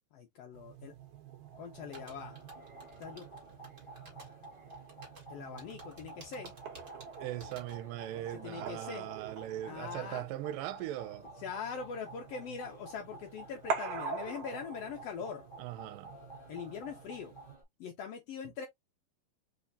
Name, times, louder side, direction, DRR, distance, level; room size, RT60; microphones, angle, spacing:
voice 1, 0.1-0.9 1.6-2.4 3.0-3.3 5.3-6.5 8.3-9.1 9.6-10.2 11.4-15.4 16.5-17.3 17.8-18.7, left 6 dB, 80° left, 1.4 m, -42 dB
sound 1, 0.5-17.6, right 5 dB, 70° right, 2.2 m, -46 dB
sound 2, 1.7-17.6, right 1 dB, 45° left, 0.6 m, -52 dB
sound 3, 1.9-7.8, right 2 dB, 30° right, 1.3 m, -54 dB
voice 2, 7.2-11.3 15.6-16.1, right 13 dB, 85° right, 2.4 m, -40 dB
4.9 x 3.4 x 2.7 m
omnidirectional pair, 3.8 m